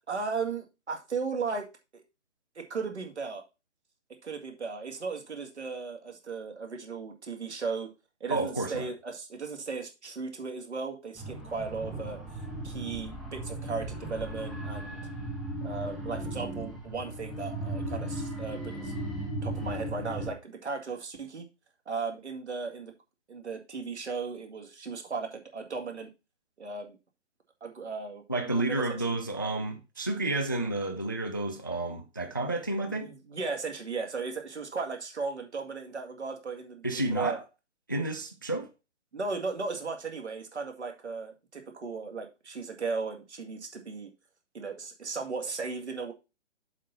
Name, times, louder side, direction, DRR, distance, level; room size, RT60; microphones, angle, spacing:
voice 1, 0.1-1.7 1.9-2.0 2.6-3.4 4.2-7.9 8.2-12.2 12.6-15.0 15.6-18.9 19.4-21.5 21.9-22.9 23.3-26.1 26.6-27.0 27.6-28.8 32.9-37.4 39.1-44.1 44.5-46.1, right 4 dB, 70° right, 2.1 m, -36 dB
voice 2, 8.3-8.9 28.3-33.1 36.8-37.4 37.9-38.7, right 2 dB, 20° left, 0.3 m, -30 dB
sound 1, 11.2-20.3, right 1 dB, ahead, 0.8 m, -36 dB
7.3 x 4.3 x 5.6 m
figure-of-eight pair, 135°, 35 cm